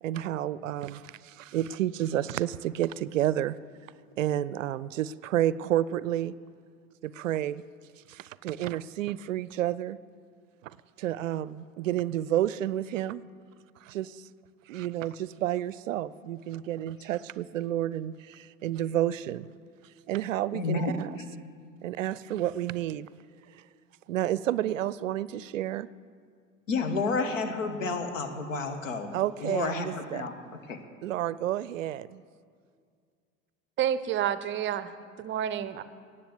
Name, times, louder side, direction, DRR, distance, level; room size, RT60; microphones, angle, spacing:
voice 1, 0.0-3.6 4.2-6.3 7.0-7.6 8.1-10.0 11.0-13.2 13.8-14.2 14.7-19.5 20.1-21.1 21.8-23.1 24.1-25.9 29.1-30.3 31.0-32.2, right 12 dB, 70° right, 19 dB, 0.5 m, -30 dB
voice 2, 20.5-21.2 26.7-29.1 29.4-30.3 30.7-30.8, left 3 dB, 70° left, 7 dB, 1.5 m, -30 dB
voice 3, 33.8-35.8, right 10 dB, 30° right, 14 dB, 0.6 m, -29 dB
18.0 x 7.5 x 7.9 m, 2.2 s
figure-of-eight pair, 70°, 40 cm